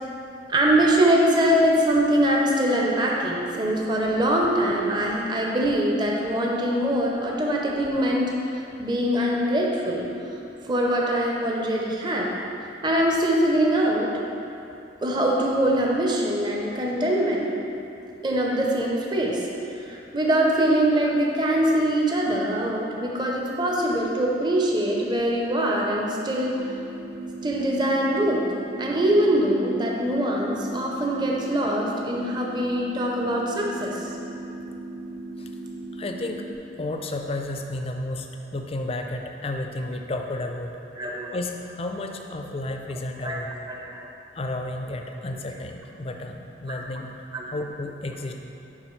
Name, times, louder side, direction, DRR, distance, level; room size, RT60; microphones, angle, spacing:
voice 1, 0.5-10.1 10.6-12.3 12.8-14.1 15.0-17.4 18.2-19.5 19.7-26.6 27.4-28.4 28.8-34.1 41.0-41.3 43.2-43.4 43.7-43.8 46.7-46.8 47.3-47.4, right 1 dB, 25° right, -2 dB, 0.6 m, -23 dB
sound 1, 26.6-36.6, right 2 dB, 65° right, 0.6 m, -37 dB
voice 2, 35.9-36.4 36.8-38.3 38.5-40.8 41.3-43.5 44.4-47.1 47.5-48.3, left 2 dB, 35° left, 4 dB, 0.4 m, -32 dB
7.4 x 5.4 x 3.1 m, 2.8 s
head